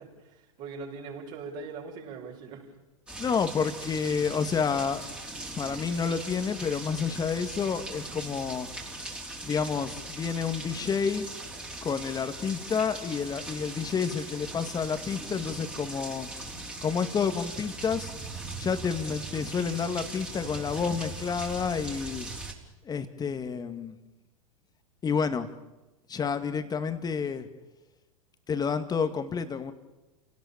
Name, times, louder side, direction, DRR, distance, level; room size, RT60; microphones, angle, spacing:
voice 1, 0.0-2.7, right 4 dB, 45° right, 0 dB, 6.4 m, -41 dB
sound 1, 3.1-22.5, right 2 dB, 5° right, 3.7 m, -40 dB
voice 2, 3.2-5.0 5.6-8.7 9.4-11.3 11.8-16.3 16.8-18.1 18.6-22.3 22.8-23.9 25.0-25.5 26.1-27.5 28.5-29.7, left 6 dB, 20° left, 9 dB, 2.1 m, -29 dB
29.5 x 18.0 x 7.2 m, 1.1 s
figure-of-eight pair, 90°, 18 cm